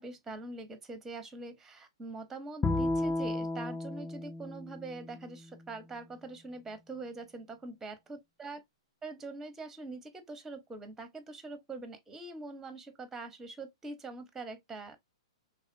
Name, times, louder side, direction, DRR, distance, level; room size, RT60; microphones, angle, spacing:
voice 1, 0.0-8.6 9.0-15.0, right 3 dB, 10° right, 0.9 m, -44 dB
Bowed string instrument, 2.6-5.9, left 2 dB, 10° left, 0.5 m, -34 dB
4.1 x 3.4 x 2.6 m
figure-of-eight pair, 110°, 3 cm